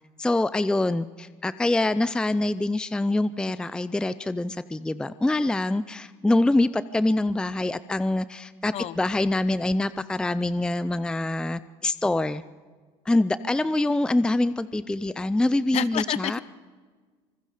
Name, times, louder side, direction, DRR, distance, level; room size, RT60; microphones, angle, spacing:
voice 1, 0.2-12.4 13.1-16.4, left 2 dB, 5° left, 14 dB, 0.5 m, -25 dB
voice 2, 15.7-16.4, left 11 dB, 50° left, 16 dB, 1.0 m, -28 dB
26.0 x 21.0 x 5.0 m, 1.5 s
supercardioid pair, 110°, 14 cm